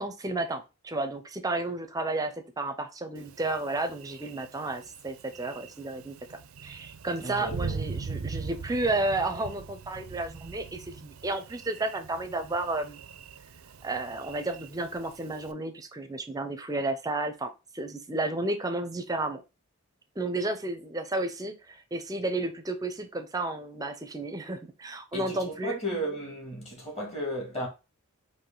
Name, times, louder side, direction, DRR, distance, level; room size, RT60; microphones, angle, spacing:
voice 1, 0.0-6.1 6.6-13.0 13.8-19.4 20.2-25.8, right 2 dB, 15° right, 0.5 m, -32 dB
Thunder, 3.2-15.5, right 5 dB, 80° right, 0.5 m, -41 dB
voice 2, 7.2-7.8 25.1-27.7, right 1 dB, 30° left, 1.8 m, -34 dB
4.8 x 2.6 x 3.8 m
head